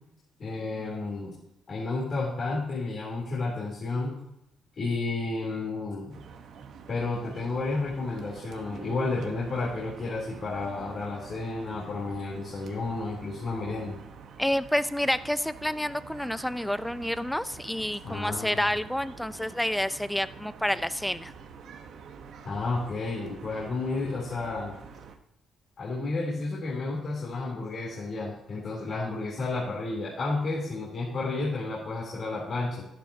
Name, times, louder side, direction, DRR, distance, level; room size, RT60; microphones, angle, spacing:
voice 1, 0.4-1.3 1.7-4.2 4.8-6.2 6.9-14.0 18.0-18.6 22.4-24.7 25.8-32.8, left 3 dB, 50° left, -5 dB, 3.5 m, -31 dB
sound 1, 6.1-25.2, right 6 dB, 70° right, 1.2 m, -47 dB
voice 2, 14.4-21.3, left 1 dB, 5° left, 14 dB, 0.6 m, -29 dB
12.0 x 11.5 x 2.9 m, 0.85 s
cardioid pair, 90°, 0 cm